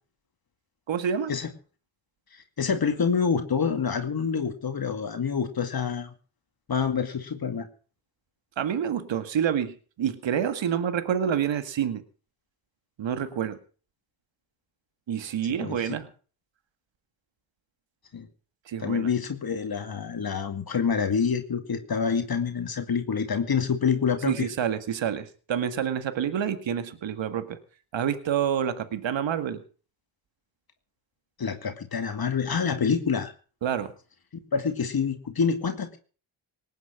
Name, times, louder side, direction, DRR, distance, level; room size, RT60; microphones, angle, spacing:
voice 1, 0.9-1.3 8.6-12.0 13.0-13.6 15.1-16.1 18.7-19.1 24.3-27.6 27.9-29.6 33.6-33.9, right 8 dB, 65° right, 11 dB, 2.0 m, -28 dB
voice 2, 2.3-6.1 6.7-7.7 15.6-15.9 18.1-18.3 18.8-24.5 31.4-33.3 34.5-36.0, left 6 dB, 50° left, 6 dB, 2.3 m, -27 dB
19.0 x 9.5 x 6.0 m, 0.39 s
supercardioid pair, 55°, 48 cm